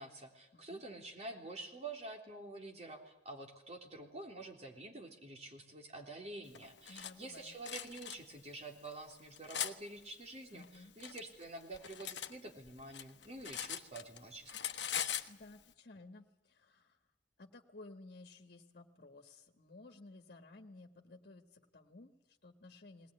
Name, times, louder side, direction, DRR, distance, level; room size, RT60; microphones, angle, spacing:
voice 1, 0.0-14.5, right 2 dB, 35° right, 2 dB, 3.5 m, -48 dB
voice 2, 0.5-0.8 6.9-7.6 10.5-10.9 14.9-17.0 17.4-23.1, left 2 dB, 55° left, 4 dB, 1.7 m, -56 dB
Cutlery silverware, 6.5-7.1 7.6-8.2 8.9-9.7 10.6-12.3 12.6-14.2 14.5-15.3, left 10 dB, 70° left, 1.2 m, -40 dB
20.0 x 19.5 x 9.9 m, 0.89 s
head